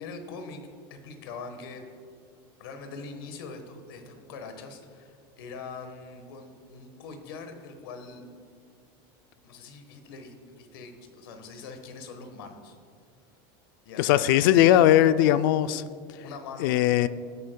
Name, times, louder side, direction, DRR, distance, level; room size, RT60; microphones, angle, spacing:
voice 1, 0.0-1.8 2.6-8.3 9.4-12.7 13.8-14.4 16.2-16.7, left 4 dB, 85° left, 6 dB, 1.3 m, -42 dB
voice 2, 14.0-15.8 16.6-17.1, left 12 dB, 70° left, 14 dB, 0.4 m, -19 dB
18.0 x 8.4 x 2.3 m, 2.3 s
supercardioid pair, 165°, 12 cm